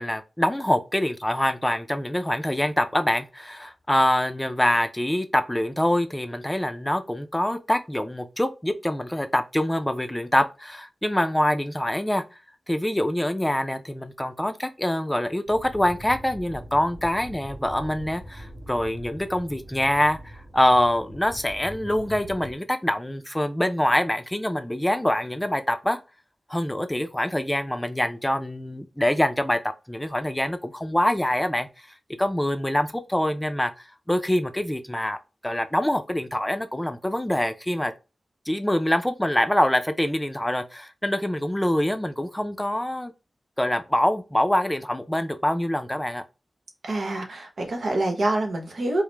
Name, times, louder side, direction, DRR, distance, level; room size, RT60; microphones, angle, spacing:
voice 1, 0.0-12.4 12.7-26.0 26.5-31.9 32.2-33.7 34.1-35.2 35.4-37.9 38.5-43.1 43.6-46.2, left 1 dB, 10° left, 0.5 m, -25 dB
sound 1, 15.5-22.5, right 1 dB, 70° right, 1.9 m, -42 dB
voice 2, 46.8-49.0, right 2 dB, 85° right, 1.0 m, -26 dB
4.8 x 2.1 x 3.3 m
wide cardioid pair, 85°, 0 cm